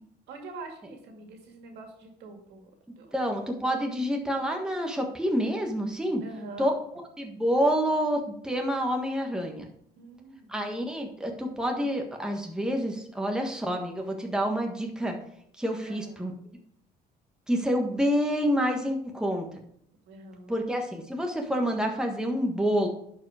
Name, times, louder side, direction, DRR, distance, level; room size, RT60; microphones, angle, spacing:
voice 1, 0.3-3.1 6.2-6.7 10.0-10.5 15.8-16.3 20.1-20.6, right 3 dB, 80° right, 3 dB, 2.2 m, -45 dB
voice 2, 3.1-6.2 6.6-6.7 7.2-9.7 10.5-15.1 15.6-16.3 17.5-19.5 20.5-22.9, equal, 5° right, 2 dB, 1.5 m, -28 dB
11.0 x 4.9 x 5.0 m, 0.69 s
cardioid pair, 110°, 17 cm